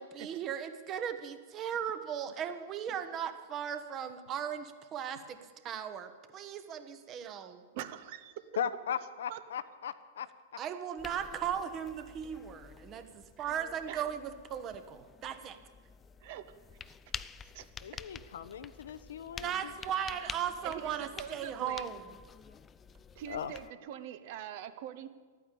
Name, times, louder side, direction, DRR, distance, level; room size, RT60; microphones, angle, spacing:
voice 1, 0.0-5.4 5.6-7.6 10.6-15.6 19.4-22.0, right 8 dB, 30° right, 9 dB, 1.1 m, -37 dB
voice 2, 7.5-8.4 9.3-9.4 13.9-14.0 16.2-16.6 16.9-17.0 17.4-18.0 19.4-19.9 20.2-20.4 20.6-21.9 23.1-25.1, right 10 dB, 50° right, 11 dB, 0.9 m, -44 dB
voice 3, 8.6-10.3 17.8-19.7 23.3-23.5, left 8 dB, 65° left, 13 dB, 0.7 m, -38 dB
sound 1, 11.0-23.7, left 6 dB, 20° left, 0.4 m, -49 dB
12.0 x 9.2 x 8.5 m, 1.5 s
figure-of-eight pair, 100°, 0 cm